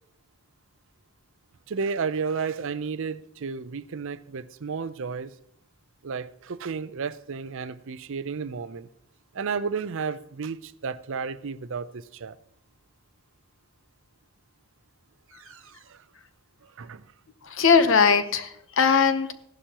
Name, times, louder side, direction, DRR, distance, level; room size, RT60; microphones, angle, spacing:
voice 1, 1.7-5.3 6.0-8.9 9.3-12.4 15.3-16.0 16.6-17.1, right 5 dB, 65° right, 0.5 m, -32 dB
voice 2, 17.5-19.3, left 5 dB, 65° left, 0.9 m, -20 dB
15.5 x 11.5 x 3.0 m
head